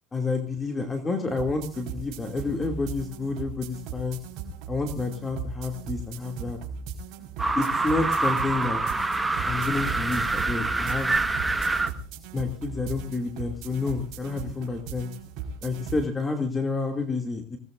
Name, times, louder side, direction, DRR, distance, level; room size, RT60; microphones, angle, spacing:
voice 1, 0.1-4.2 4.7-6.6 7.5-8.8 9.5-11.1 12.3-15.1 15.6-17.6, left 3 dB, 15° left, 4 dB, 2.5 m, -29 dB
sound 1, 1.4-16.1, right 5 dB, 60° right, 4.8 m, -38 dB
sound 2, 7.4-11.9, right 3 dB, 10° right, 1.5 m, -26 dB
25.5 x 18.0 x 2.6 m, 0.36 s
supercardioid pair, 120°, 0 cm